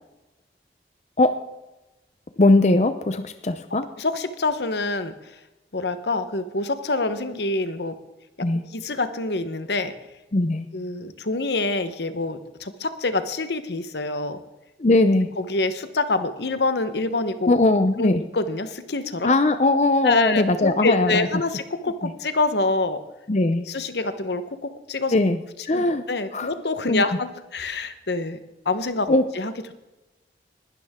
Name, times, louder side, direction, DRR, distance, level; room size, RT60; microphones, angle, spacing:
voice 1, 2.4-3.8 8.4-8.6 10.3-10.7 14.8-15.3 17.5-18.2 19.2-21.3 22.0-22.1 23.3-23.6 25.1-25.4 25.7-26.0 26.3-26.5 26.9-27.0 29.1-29.2, left 2 dB, 40° left, 9 dB, 0.6 m, -19 dB
voice 2, 4.0-5.2 5.7-7.9 8.4-9.9 10.7-14.4 15.4-17.5 18.0-19.3 20.0-23.0 23.7-25.2 25.7-28.4 28.6-29.5, left 3 dB, 75° left, 11 dB, 1.1 m, -26 dB
20.0 x 12.0 x 3.7 m, 1.0 s
head